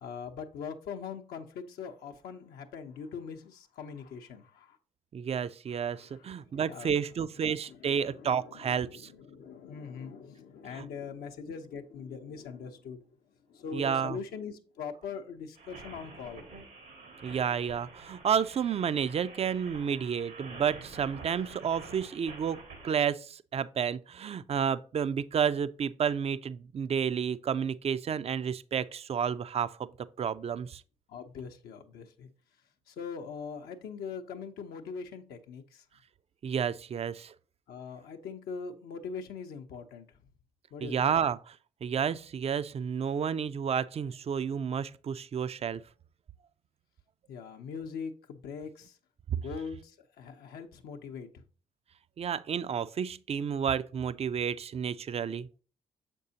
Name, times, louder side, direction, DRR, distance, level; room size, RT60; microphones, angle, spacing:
voice 1, 0.0-4.8 5.8-6.1 6.7-6.9 7.7-13.0 13.5-16.4 31.1-32.3 32.9-35.8 37.7-40.1 40.7-41.2 47.3-48.9 49.4-51.4, left 6 dB, 75° left, 0.6 m, -42 dB
voice 2, 5.1-9.1 10.7-10.8 13.7-14.2 17.2-29.9 30.2-30.8 36.4-37.3 40.8-41.6 41.8-45.8 52.2-55.5, right 7 dB, 40° right, 0.4 m, -31 dB
sound 1, 15.6-22.9, right 3 dB, 80° right, 1.6 m, -48 dB
6.6 x 5.3 x 2.7 m
hypercardioid pair, 45°, 16 cm